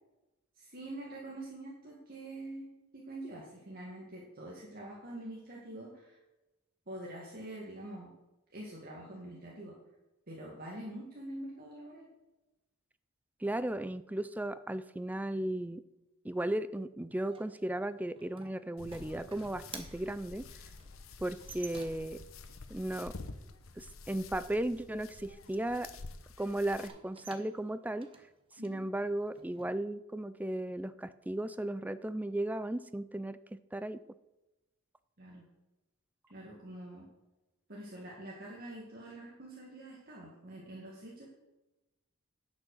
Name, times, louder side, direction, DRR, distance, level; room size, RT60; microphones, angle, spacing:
voice 1, 0.6-6.2 6.9-8.1 8.5-9.7 10.3-12.1 28.6-28.8 35.2-35.4 36.3-37.0 37.7-41.3, right 1 dB, 45° right, -4 dB, 2.0 m, -45 dB
voice 2, 13.4-15.8 16.2-20.5 21.2-22.2 22.7-23.1 23.8-25.9 26.4-28.1 28.6-33.4 33.7-34.0, right 1 dB, 10° right, 14 dB, 0.4 m, -35 dB
sound 1, 17.3-22.3 26.7-29.7, right 5 dB, 25° right, 1.1 m, -53 dB
sound 2, 18.8-26.9, left 3 dB, 80° left, 0.9 m, -49 dB
10.5 x 6.3 x 6.5 m, 1.0 s
head